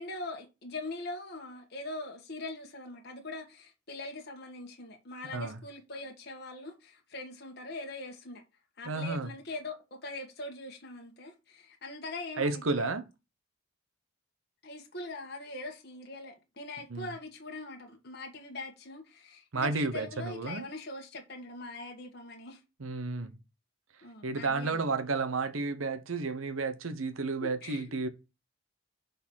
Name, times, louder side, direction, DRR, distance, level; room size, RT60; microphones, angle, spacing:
voice 1, 0.0-8.4 8.8-12.9 14.6-22.6 24.0-24.8 27.4-27.8, left 2 dB, 50° left, 1.5 m, -42 dB
voice 2, 8.9-9.3 12.4-13.1 16.9-17.1 19.5-20.7 22.8-23.4 24.2-28.1, right 3 dB, 90° right, 0.9 m, -32 dB
6.0 x 4.1 x 6.2 m
head